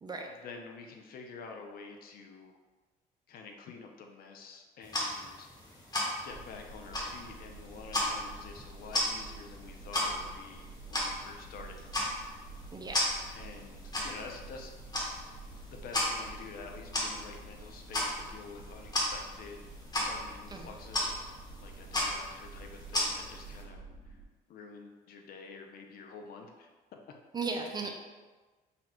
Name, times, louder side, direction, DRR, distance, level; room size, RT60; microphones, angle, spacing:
voice 1, 0.3-2.6 3.3-5.9 6.2-11.8 13.3-14.7 15.7-19.7 20.0-21.3 21.6-24.2 24.5-26.7 27.8-27.9, left 4 dB, 60° left, 3 dB, 0.6 m, -48 dB
sound 1, 4.8-23.6, left 1 dB, 25° left, 1.2 m, -36 dB
sound 2, 6.3-24.2, right 2 dB, 55° right, 1.3 m, -49 dB
voice 2, 12.7-13.0 20.5-20.8 27.3-27.9, right 4 dB, 25° right, 2 dB, 0.5 m, -36 dB
4.2 x 2.4 x 4.3 m, 1.3 s
cardioid pair, 110°, 17 cm